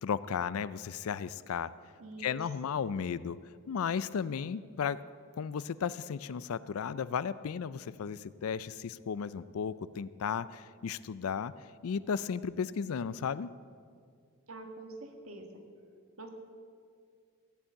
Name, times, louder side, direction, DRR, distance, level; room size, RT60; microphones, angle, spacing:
voice 1, 0.0-1.7 2.2-3.4 3.7-5.0 5.4-11.5 11.8-13.5, left 7 dB, 75° left, 16 dB, 0.4 m, -34 dB
voice 2, 2.0-2.4 2.7-2.8 14.5-15.5 16.2-16.3, right 2 dB, 70° right, 4 dB, 1.8 m, -46 dB
15.5 x 7.1 x 8.8 m, 2.2 s
head